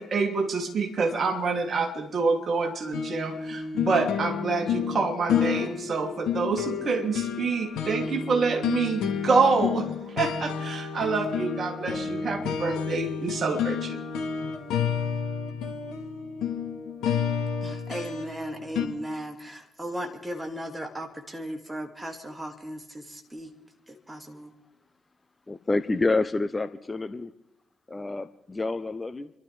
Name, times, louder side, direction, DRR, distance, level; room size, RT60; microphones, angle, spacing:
voice 1, 0.0-14.0, right 4 dB, 45° right, 2 dB, 2.9 m, -27 dB
sound 1, 2.9-18.9, left 7 dB, 65° left, 1.6 m, -30 dB
voice 2, 17.6-23.5 23.9-24.5, equal, 15° right, 4 dB, 2.4 m, -36 dB
voice 3, 25.5-27.3 27.9-29.3, left 3 dB, 25° left, 11 dB, 0.8 m, -28 dB
29.0 x 12.5 x 3.5 m, 0.95 s
figure-of-eight pair, 45°, 0 cm